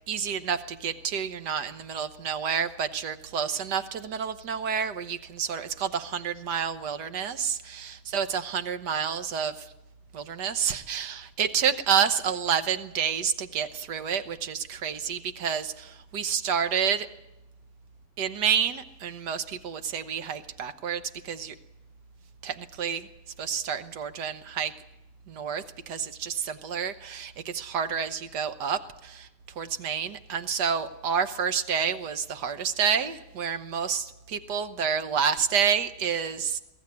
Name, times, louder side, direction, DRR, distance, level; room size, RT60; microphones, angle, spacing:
voice 1, 0.1-9.7 10.1-17.1 18.2-21.5 22.4-23.1 23.4-24.7 25.3-29.3 29.6-36.6, right 7 dB, 80° right, 10 dB, 1.6 m, -29 dB
22.0 x 15.0 x 9.5 m, 0.96 s
omnidirectional pair, 1.8 m